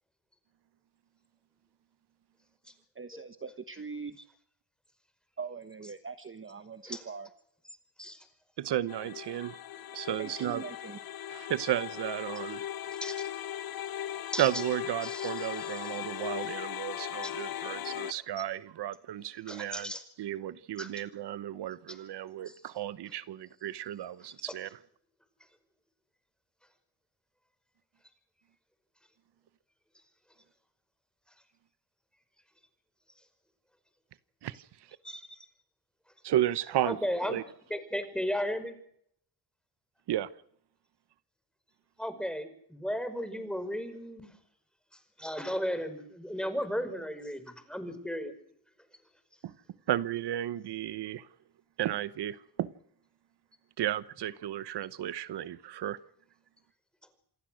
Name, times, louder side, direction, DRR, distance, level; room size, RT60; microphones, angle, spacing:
voice 1, 3.0-4.2 5.4-7.3 10.2-11.0, right 5 dB, 30° right, 1.3 m, -41 dB
voice 2, 8.6-9.6 9.9-10.6 11.3-12.7 14.4-19.9 20.2-24.7 34.4-34.6 36.2-37.0 37.3-37.4 40.1-40.3 49.4-49.5 49.9-51.3 51.8-52.7 53.8-56.0, right 12 dB, 90° right, 1.0 m, -33 dB
sound 1, 8.9-18.1, left 11 dB, 65° left, 0.8 m, -38 dB
voice 3, 15.0-15.9 17.2-17.3 17.6-17.8 18.4-18.5 19.5-20.0 20.8-20.9 21.9-22.0 35.0-35.5 36.9-37.4 37.7-38.8 42.0-44.3 45.2-48.3, equal, ahead, 5.1 m, -35 dB
27.5 x 18.5 x 6.4 m
cardioid pair, 80°, 39 cm